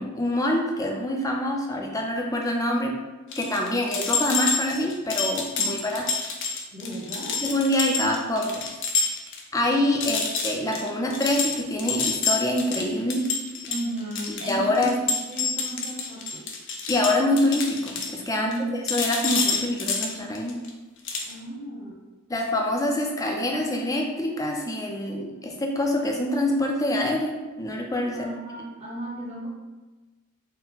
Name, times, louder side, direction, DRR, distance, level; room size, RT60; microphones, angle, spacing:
voice 1, 0.0-2.9 3.4-6.1 7.4-8.7 9.0-9.1 9.5-13.3 14.4-15.0 16.9-18.5 18.9-20.6 22.3-28.2, left 1 dB, 15° left, 1 dB, 0.5 m, -25 dB
sound 1, 3.3-9.4 9.7-9.8 10.0-18.6 18.9-20.7 21.0-21.3, left 5 dB, 60° left, 0.6 m, -28 dB
voice 2, 6.7-7.4 13.7-16.4 18.4-18.7 21.3-22.0 28.1-29.5, right 1 dB, 30° right, -4 dB, 1.0 m, -35 dB
4.3 x 2.1 x 3.9 m, 1.2 s
head